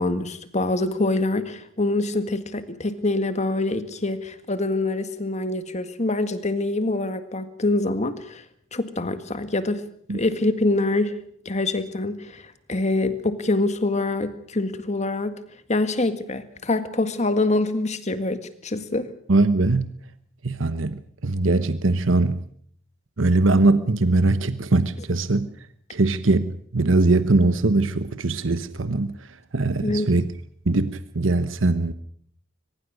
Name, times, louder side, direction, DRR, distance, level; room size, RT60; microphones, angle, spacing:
voice 1, 0.0-8.4 8.7-9.8 10.1-11.2 11.5-15.4 15.7-19.1 29.8-30.1, left 2 dB, 35° left, 1.9 m, -25 dB
voice 2, 19.3-19.9 20.4-22.4 23.2-25.5 25.9-29.2 29.5-30.3 30.7-31.9, right 2 dB, 85° right, 1.0 m, -21 dB
23.5 x 21.0 x 6.5 m
head